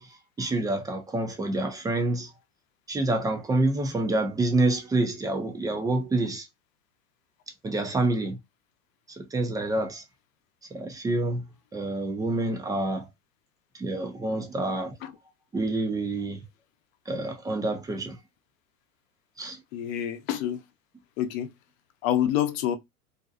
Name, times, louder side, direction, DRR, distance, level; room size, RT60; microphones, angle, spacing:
voice 1, 0.0-2.3 2.9-6.5 7.6-8.4 9.1-10.0 10.7-11.4 11.7-13.1 13.8-15.0 15.5-16.4 17.1-18.2 19.4-19.6, right 2 dB, 10° right, 0.4 m, -27 dB
voice 2, 19.7-20.6 21.2-21.5 22.0-22.8, left 11 dB, 60° left, 0.7 m, -27 dB
2.6 x 2.2 x 2.4 m
hypercardioid pair, 95°, 44 cm